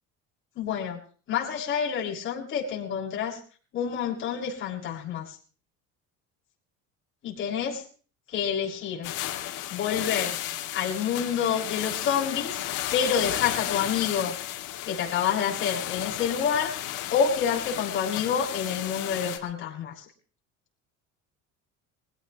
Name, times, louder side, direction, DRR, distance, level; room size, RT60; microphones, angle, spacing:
voice 1, 0.6-1.0 1.3-3.4 3.7-5.3 7.2-7.8 8.3-9.1 9.7-10.4 10.7-12.6 12.9-14.3 14.8-20.0, left 7 dB, 40° left, -4 dB, 7.0 m, -28 dB
sound 1, 9.0-19.4, left 13 dB, 70° left, 2.9 m, -33 dB
23.5 x 17.0 x 3.1 m, 0.41 s
cardioid pair, 155°, 31 cm